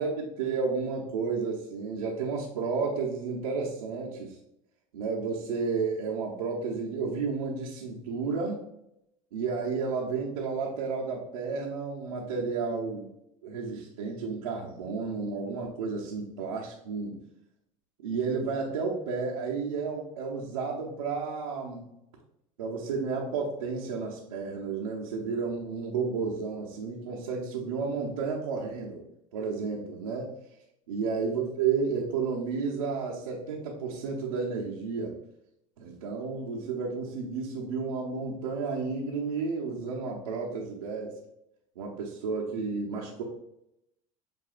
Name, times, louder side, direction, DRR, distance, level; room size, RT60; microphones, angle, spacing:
voice 1, 0.0-4.4 4.9-8.6 9.3-13.1 13.4-17.2 18.0-21.9 22.6-29.0 29.3-30.3 30.9-35.1 35.8-41.1 41.8-43.2, right 5 dB, 85° right, -4 dB, 0.8 m, -32 dB
7.6 x 2.7 x 2.5 m, 0.81 s
hypercardioid pair, 80°, 18 cm